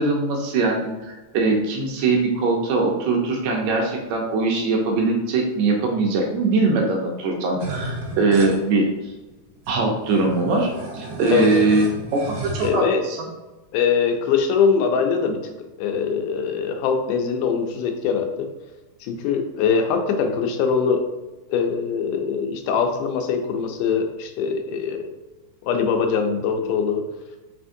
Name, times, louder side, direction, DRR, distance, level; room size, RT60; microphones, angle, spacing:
voice 1, 0.0-9.1 9.7-10.7 10.9-11.8 12.1-13.3, right 3 dB, 80° right, 1 dB, 1.7 m, -21 dB
sound 1, 7.6-8.6 9.3-9.4 9.6-12.7, right 2 dB, 65° right, 1.5 m, -33 dB
voice 2, 12.6-13.0 13.7-18.3 19.0-21.0 21.5-25.0 25.6-27.0, left 6 dB, 85° left, 4 dB, 2.1 m, -22 dB
5.0 x 3.4 x 2.6 m, 1.1 s
omnidirectional pair, 3.7 m